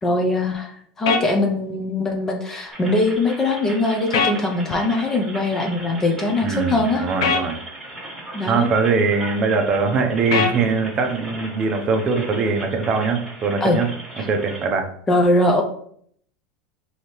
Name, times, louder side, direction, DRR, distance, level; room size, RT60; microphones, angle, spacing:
voice 1, 0.0-7.0 8.3-8.7 13.6-13.8 15.1-15.6, left 2 dB, 15° left, 2 dB, 0.5 m, -21 dB
sound 1, 1.1-1.2 4.1-4.4 7.2-7.4 10.3-10.6, left 5 dB, 90° left, 0.6 m, -20 dB
sound 2, 2.7-14.7, right 1 dB, 5° right, 1.5 m, -37 dB
voice 2, 6.4-7.6 8.5-13.9 14.2-14.9, right 4 dB, 30° right, 5 dB, 0.6 m, -21 dB
4.9 x 2.8 x 3.0 m, 0.64 s
supercardioid pair, 145°, 2 cm